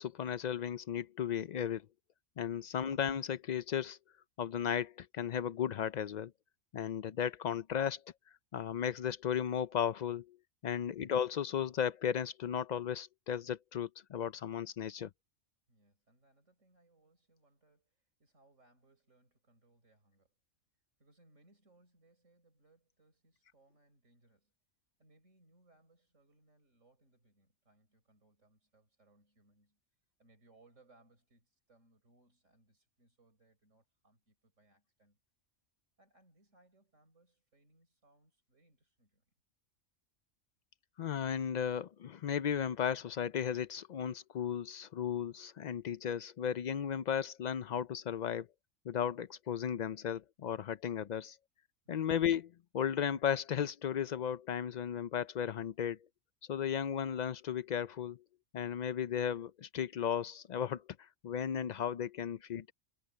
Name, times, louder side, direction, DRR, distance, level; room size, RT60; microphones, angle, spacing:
voice 1, 0.0-1.9 2.4-4.0 4.4-6.3 6.7-8.0 8.5-10.4 10.6-15.1 41.0-48.5 48.9-51.4 51.9-56.0 56.5-58.2 58.5-62.7, left 8 dB, 80° left, 0.4 m, -35 dB
voice 2, 15.7-20.4 21.0-24.5 25.0-29.8 30.2-35.2 36.0-39.2 51.8-52.1, right 2 dB, 70° right, 6.1 m, -69 dB
omnidirectional pair, 1.3 m